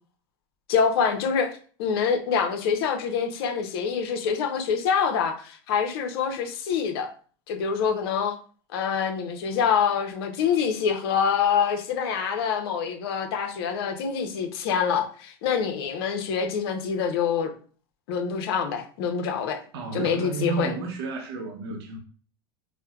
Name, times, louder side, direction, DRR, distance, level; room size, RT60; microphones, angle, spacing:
voice 1, 0.7-7.1 7.5-8.4 8.7-17.5 18.1-19.6 19.9-20.7, left 6 dB, 70° left, 0.7 m, -26 dB
voice 2, 19.7-22.0, right 3 dB, 75° right, 0.7 m, -31 dB
4.2 x 2.1 x 2.3 m
supercardioid pair, 110°, 13 cm